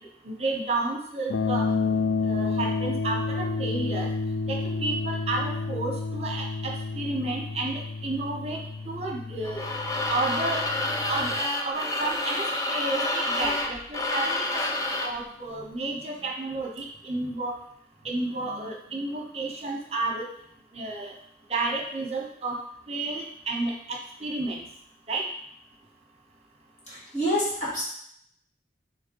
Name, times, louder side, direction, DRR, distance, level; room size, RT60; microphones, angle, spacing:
voice 1, 0.2-4.1 4.5-8.6 8.8-9.7 10.1-10.6 11.1-17.6 18.0-20.2 20.7-21.1 21.5-22.6 22.9-24.6 25.1-25.2, right 2 dB, 35° right, 0 dB, 1.0 m, -31 dB
sound 1, 1.3-11.4, left 4 dB, 85° left, 0.4 m, -30 dB
sound 2, 9.4-15.2, left 2 dB, 20° left, 0.6 m, -28 dB
voice 2, 26.9-27.8, equal, 40° left, -7 dB, 2.3 m, -27 dB
6.6 x 3.1 x 4.6 m, 0.70 s
head